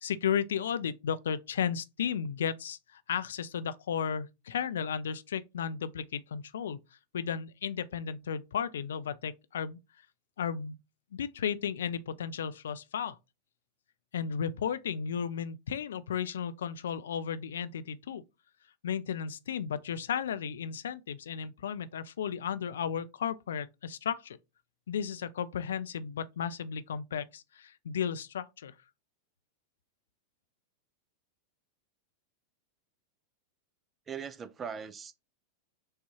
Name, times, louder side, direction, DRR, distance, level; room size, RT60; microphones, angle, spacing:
voice 1, 0.0-6.8 7.1-9.8 10.4-10.8 11.1-13.2 14.1-18.2 18.8-24.4 24.9-28.7, left 7 dB, 65° left, 0.4 m, -34 dB
voice 2, 34.1-35.1, right 7 dB, 20° right, 0.4 m, -40 dB
6.3 x 2.3 x 2.8 m
figure-of-eight pair, 90°, 0 cm